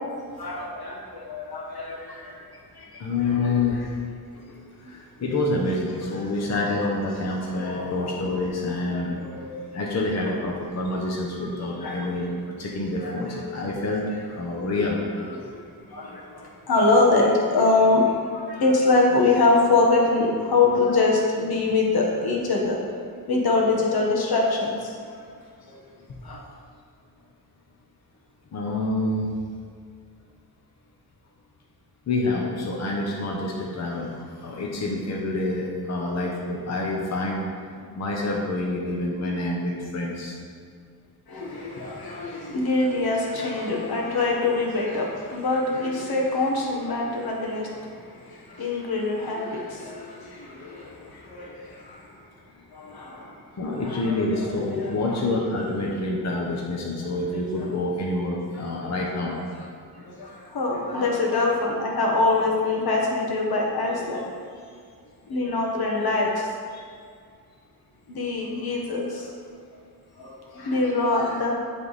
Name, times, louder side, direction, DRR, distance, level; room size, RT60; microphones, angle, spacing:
voice 1, 0.4-1.0 1.2-2.2 3.2-3.5 6.0-6.1 7.6-8.2 8.9-9.6 11.8-12.0 13.0-13.4 15.9-16.2 16.7-18.0 18.5-22.8 23.3-24.7 26.3-26.4 41.3-47.7 48.6-50.0 51.3-51.5 52.9-53.0 53.8-54.9 57.6-57.7 59.3-59.4 60.5-64.2 65.3-66.4 68.2-69.1 70.6-71.5, left 3 dB, 75° left, -1 dB, 1.3 m, -23 dB
voice 2, 3.0-3.8 4.8-9.2 9.7-15.0 28.5-29.3 32.1-40.4 47.1-47.2 53.6-59.4 66.7-66.8, left 2 dB, 45° left, -2 dB, 0.9 m, -27 dB
11.0 x 3.6 x 4.0 m, 2.1 s
wide cardioid pair, 130°, 37 cm